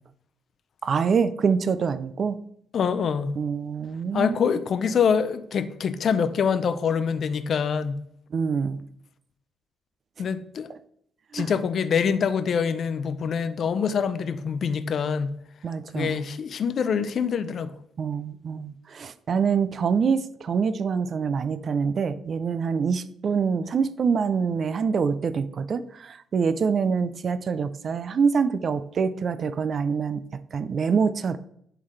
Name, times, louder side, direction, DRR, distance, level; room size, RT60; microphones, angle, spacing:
voice 1, 0.8-2.4 3.4-4.4 8.3-8.8 11.3-11.5 15.6-16.2 18.0-31.4, right 6 dB, 50° right, 0.5 m, -25 dB
voice 2, 2.7-3.4 4.1-8.0 10.2-10.7 11.3-15.4 15.9-17.7, left 6 dB, 55° left, 0.6 m, -25 dB
11.0 x 3.9 x 3.2 m
cardioid pair, 90°, 0 cm